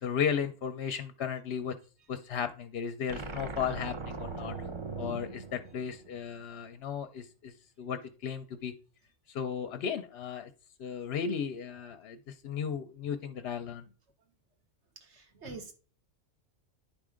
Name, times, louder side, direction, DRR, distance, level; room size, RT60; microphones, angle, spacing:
voice 1, 0.0-1.8 2.1-4.7 5.0-8.7 9.3-10.5 10.8-13.9 15.4-15.6, left 7 dB, 60° left, 9 dB, 0.7 m, -35 dB
sound 1, 3.1-6.4, right 3 dB, 35° right, 0.5 m, -40 dB
voice 2, 15.1-15.7, right 3 dB, 60° right, 5 dB, 1.6 m, -45 dB
10.0 x 3.5 x 4.9 m, 0.38 s
omnidirectional pair, 1.4 m